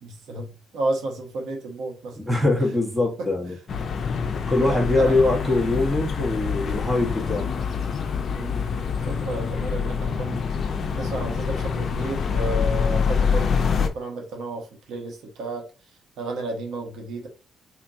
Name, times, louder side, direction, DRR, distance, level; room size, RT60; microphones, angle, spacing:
voice 1, 0.0-2.2 3.2-3.3 4.6-5.2 8.3-15.7 16.2-17.3, right 2 dB, 75° right, 1.3 m, -32 dB
voice 2, 2.2-3.6 4.5-7.5, left 2 dB, 10° right, 1.3 m, -22 dB
sound 1, 3.7-13.9, left 6 dB, 55° left, 0.6 m, -26 dB
4.3 x 3.0 x 2.7 m
cardioid pair, 90°, 0 cm